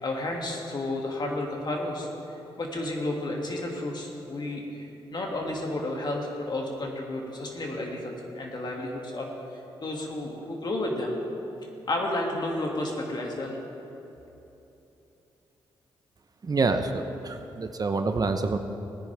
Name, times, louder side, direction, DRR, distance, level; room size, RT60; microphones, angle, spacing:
voice 1, 0.0-2.1 2.6-4.6 5.1-9.3 9.8-11.2 11.9-13.6, left 1 dB, 45° left, 0 dB, 2.4 m, -31 dB
voice 2, 16.4-18.6, right 3 dB, 40° right, 7 dB, 0.8 m, -27 dB
18.0 x 10.0 x 3.5 m, 3.0 s
supercardioid pair, 50°, 10 cm